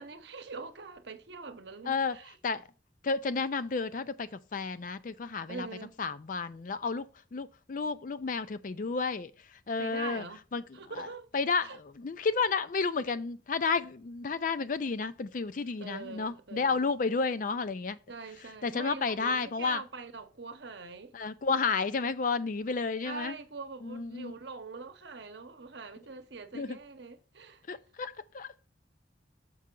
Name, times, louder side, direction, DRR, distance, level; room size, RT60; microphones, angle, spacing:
voice 1, 0.0-2.3 5.5-6.0 9.8-10.4 10.7-11.3 11.6-11.8 15.8-16.9 18.1-21.1 23.0-27.6, right 4 dB, 60° right, 0.9 m, -43 dB
voice 2, 1.9-2.2 2.4-2.7 3.0-5.7 6.0-10.2 10.5-18.0 18.6-19.8 21.1-23.4 23.8-24.3 26.5-26.8 27.7-28.7, left 4 dB, 45° left, 0.4 m, -32 dB
6.2 x 5.5 x 3.7 m
head